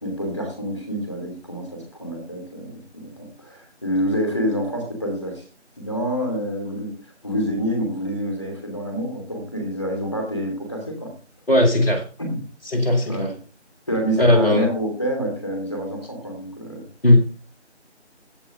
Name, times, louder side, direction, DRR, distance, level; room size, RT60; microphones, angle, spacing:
voice 1, 0.0-2.7 2.9-5.4 5.8-6.9 7.2-11.1 12.2-12.4 13.1-13.3 13.9-16.8, equal, 25° left, 0 dB, 2.9 m, -27 dB
voice 2, 11.5-12.0 12.6-13.3 14.2-14.7 17.0-17.2, left 1 dB, 55° left, 2 dB, 2.0 m, -17 dB
12.5 x 8.1 x 2.7 m, 0.35 s
figure-of-eight pair, 180°, 35 cm